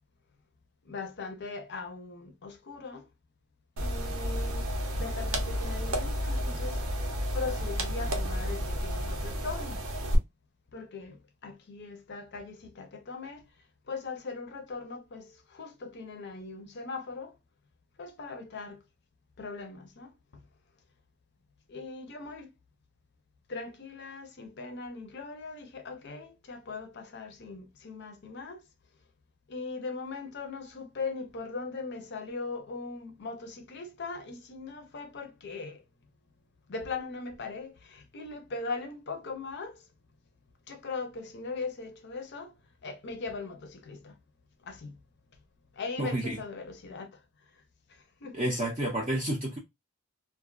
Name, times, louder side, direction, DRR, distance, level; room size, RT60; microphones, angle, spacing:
voice 1, 0.8-3.1 3.8-4.7 5.0-6.8 7.3-9.8 10.7-13.4 13.9-17.3 18.0-18.8 19.4-20.4 21.7-22.5 23.5-28.6 29.5-35.8 36.7-39.8 40.7-42.5 42.8-44.2 44.6-45.0 45.7-47.2 47.9-48.7, left 4 dB, 50° left, 0.5 m, -40 dB
sound 1, 3.8-10.2, equal, 70° right, 0.6 m, -31 dB
voice 2, 46.0-46.4 48.3-49.6, right 1 dB, 25° right, 0.5 m, -30 dB
2.4 x 2.2 x 2.3 m
head